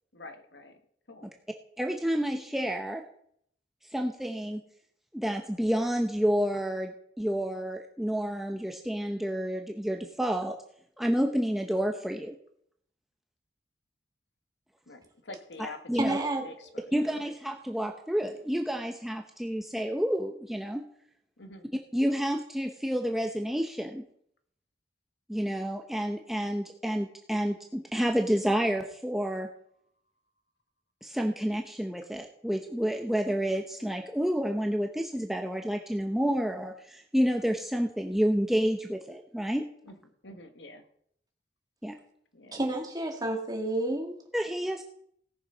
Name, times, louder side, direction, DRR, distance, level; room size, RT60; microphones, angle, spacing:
voice 1, 0.1-0.8 1.1-1.3 14.9-16.9 21.4-21.7 39.9-40.0 40.2-40.8 42.3-42.6, left 2 dB, 85° left, 7 dB, 1.5 m, -46 dB
voice 2, 1.8-3.0 3.9-4.6 5.1-6.9 7.2-10.6 11.0-12.3 15.9-16.2 16.9-20.8 21.9-24.0 25.3-29.5 31.0-39.7 41.8-42.0 44.3-44.8, equal, ahead, 2 dB, 0.8 m, -29 dB
voice 3, 16.0-16.5 42.5-44.2, right 1 dB, 20° right, 2 dB, 2.2 m, -30 dB
17.5 x 6.8 x 5.5 m, 0.67 s
head